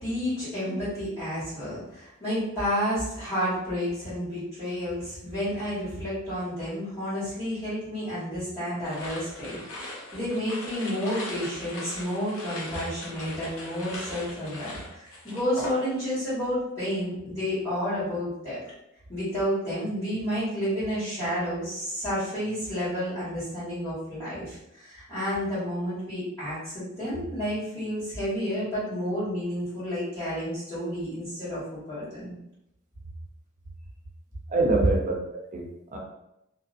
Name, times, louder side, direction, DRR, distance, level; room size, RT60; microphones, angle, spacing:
voice 1, 0.0-18.6 19.1-32.3, equal, 15° left, -15 dB, 1.2 m, -31 dB
sound 1, 8.8-16.2 16.5-17.0, left 1 dB, 80° left, 0.7 m, -39 dB
voice 2, 34.5-36.0, right 3 dB, 40° right, 0 dB, 0.4 m, -26 dB
2.5 x 2.0 x 2.4 m, 0.84 s
head